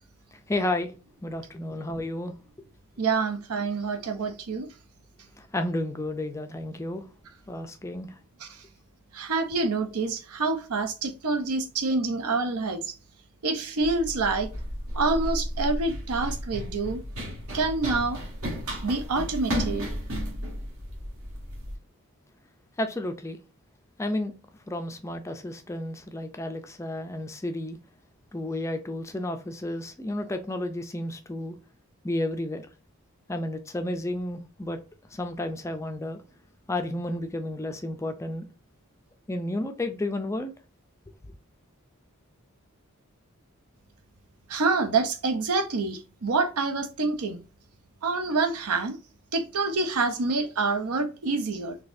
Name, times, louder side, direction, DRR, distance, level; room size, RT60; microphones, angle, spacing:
voice 1, 0.5-0.9 1.2-2.3 5.4-7.0 7.5-8.1 22.8-23.4 24.0-24.3 24.7-27.8 28.3-31.5 32.0-32.6 33.3-34.8 35.1-36.2 36.7-38.4 39.3-40.5, left 1 dB, 15° left, 0.3 m, -31 dB
voice 2, 3.0-4.7 8.4-8.6 9.1-12.9 13.4-14.5 14.9-17.0 17.5-18.2 18.8-19.9 44.5-47.4 48.0-49.0 49.3-51.8, right 3 dB, 85° right, 0.7 m, -27 dB
Run, 13.8-21.7, equal, 65° right, 1.2 m, -33 dB
4.0 x 2.7 x 2.5 m
head